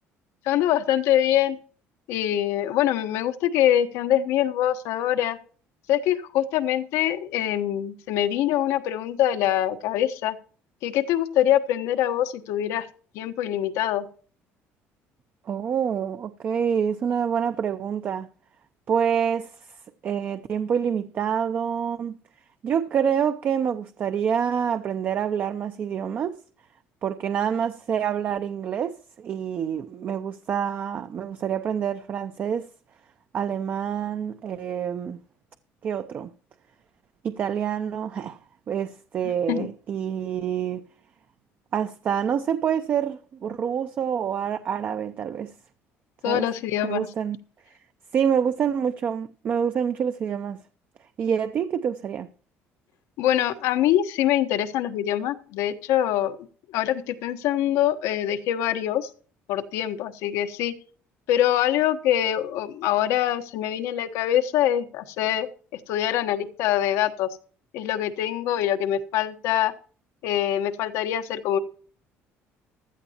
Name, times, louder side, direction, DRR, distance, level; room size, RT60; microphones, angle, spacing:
voice 1, 0.4-1.6 2.1-5.4 5.9-10.4 10.8-12.9 13.1-14.1 39.5-39.7 46.2-47.1 53.2-56.4 56.7-59.1 59.5-60.7 61.3-65.5 65.7-67.4 67.7-69.7 70.2-71.6, left 11 dB, 80° left, 1.2 m, -24 dB
voice 2, 15.5-18.3 18.9-19.8 20.0-22.2 22.6-26.4 27.0-32.7 33.3-35.2 35.8-36.3 37.2-38.4 38.7-40.8 41.7-45.5 46.3-46.5 46.8-47.4 48.1-50.6 51.2-52.3, right 8 dB, 35° right, 0.6 m, -27 dB
15.5 x 12.0 x 2.9 m
cardioid pair, 155°, 5 cm